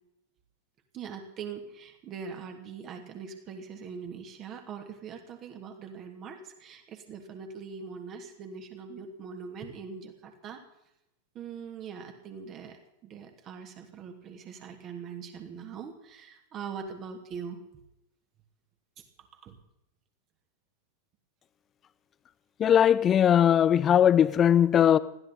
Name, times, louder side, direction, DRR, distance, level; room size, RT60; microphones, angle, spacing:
voice 1, 0.9-10.6 11.3-17.6 19.0-19.1 19.4-19.5, right 6 dB, 30° right, 2.9 m, -42 dB
voice 2, 22.6-25.0, left 9 dB, 25° left, 0.7 m, -20 dB
20.5 x 15.5 x 4.2 m
figure-of-eight pair, 90°, 0 cm